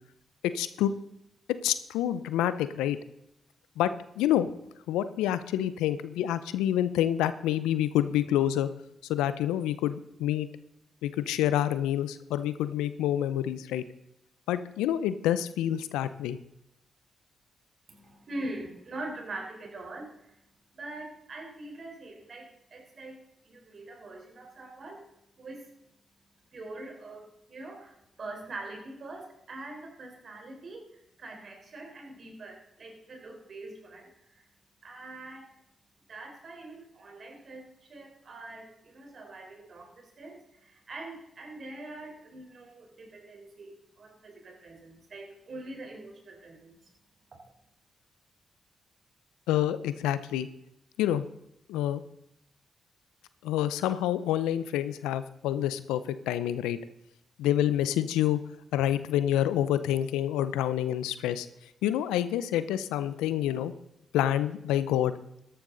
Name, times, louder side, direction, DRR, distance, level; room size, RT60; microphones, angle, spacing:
voice 1, 0.5-0.9 1.6-3.0 3.8-3.9 4.2-4.5 4.9-8.7 9.1-10.5 11.0-13.8 14.5-16.4 49.5-50.5 51.0-51.3 51.7-52.0 53.4-56.8 57.4-58.4 58.7-61.5 61.8-63.7 64.1-65.1, left 11 dB, 85° left, 14 dB, 0.6 m, -27 dB
voice 2, 17.9-25.8 26.5-34.5 34.8-35.5 36.1-47.5, right 2 dB, 55° right, 2 dB, 4.0 m, -44 dB
13.5 x 11.5 x 4.0 m, 0.82 s
hypercardioid pair, 45°, 0 cm